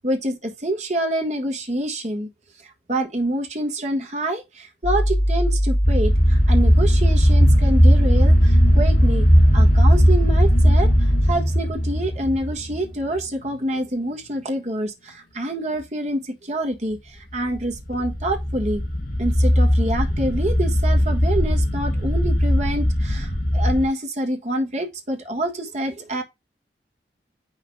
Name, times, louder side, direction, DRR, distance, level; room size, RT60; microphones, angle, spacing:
voice 1, 0.0-2.3 2.9-9.3 9.5-10.9 11.2-18.8 19.2-26.2, right 1 dB, 40° right, 1.4 m, -26 dB
sound 1, 4.8-11.3, equal, 30° left, 3.7 m, -20 dB
sound 2, 5.8-13.6 17.3-23.9, equal, 55° left, 1.3 m, -19 dB
7.4 x 5.9 x 2.3 m
head